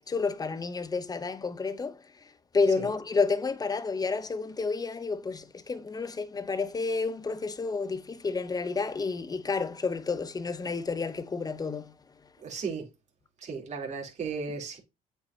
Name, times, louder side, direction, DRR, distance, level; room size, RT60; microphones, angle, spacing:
voice 1, 0.0-11.9, left 4 dB, 20° left, 0.8 m, -30 dB
voice 2, 2.7-3.0 12.4-12.9 13.4-14.8, right 5 dB, 45° right, 3.4 m, -35 dB
8.3 x 5.8 x 2.8 m
cardioid pair, 110°, 17 cm